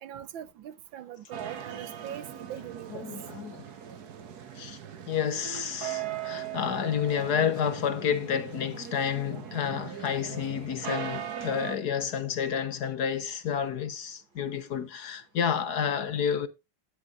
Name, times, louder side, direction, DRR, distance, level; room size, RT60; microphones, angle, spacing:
voice 1, 0.0-3.1, right 10 dB, 75° right, 1.5 m, -41 dB
sound 1, 1.3-11.8, right 10 dB, 55° right, 1.6 m, -39 dB
voice 2, 2.9-3.7 4.5-4.8 5.1-16.5, left 8 dB, 55° left, 1.4 m, -30 dB
13.5 x 9.6 x 2.5 m
omnidirectional pair, 2.2 m